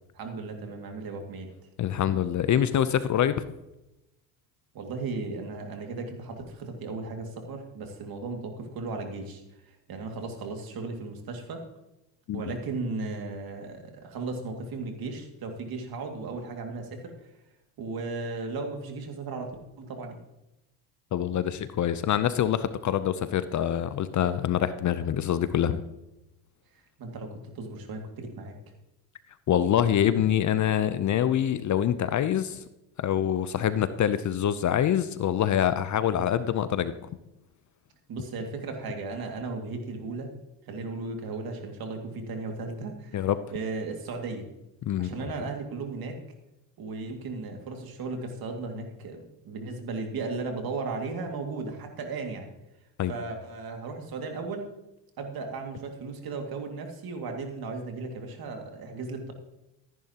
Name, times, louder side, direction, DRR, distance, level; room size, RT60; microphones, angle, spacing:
voice 1, 0.1-1.5 4.7-11.6 12.3-17.3 17.8-20.2 27.0-28.5 38.1-40.3 40.7-44.5 45.0-46.2 46.8-52.5 53.1-54.7 55.2-59.3, right 3 dB, 50° right, 4 dB, 2.2 m, -36 dB
voice 2, 1.8-3.4 12.3-12.4 21.1-25.8 29.5-32.6 33.0-36.9 43.1-43.4 44.9-45.1 53.0-53.1, left 10 dB, 40° left, 13 dB, 0.6 m, -25 dB
14.0 x 10.5 x 2.9 m, 0.93 s
supercardioid pair, 90°, 46 cm